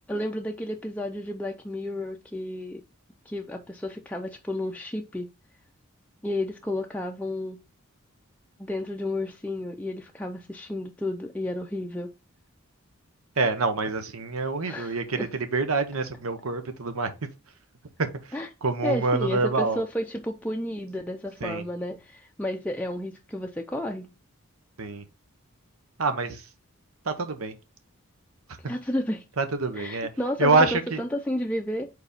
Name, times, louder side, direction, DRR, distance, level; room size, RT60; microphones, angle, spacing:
voice 1, 0.1-2.8 3.3-5.3 6.2-7.6 8.6-12.1 14.6-15.3 18.3-18.5 18.8-24.1 28.6-29.2 29.7-31.9, left 1 dB, 5° left, 0.4 m, -32 dB
voice 2, 13.4-17.1 18.6-19.8 21.4-21.6 24.8-25.0 26.0-26.4 27.1-27.5 29.4-30.1 30.4-31.0, right 3 dB, 80° right, 0.9 m, -26 dB
4.9 x 4.1 x 5.0 m
head